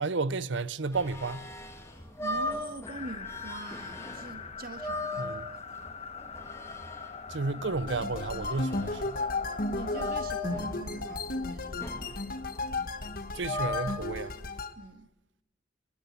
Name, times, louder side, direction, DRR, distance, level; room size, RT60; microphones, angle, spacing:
voice 1, 0.0-1.5 5.2-5.5 7.3-9.2 13.3-14.3, right 3 dB, 75° right, 0.7 m, -32 dB
sound 1, 0.9-14.5, left 1 dB, 15° left, 2.2 m, -39 dB
voice 2, 1.9-5.4 9.7-12.0 14.8-15.1, right 2 dB, 55° right, 1.7 m, -44 dB
sound 2, 2.9-10.1, left 5 dB, 35° left, 1.6 m, -43 dB
sound 3, 7.9-14.7, left 3 dB, 50° left, 1.6 m, -34 dB
26.0 x 12.5 x 10.0 m
head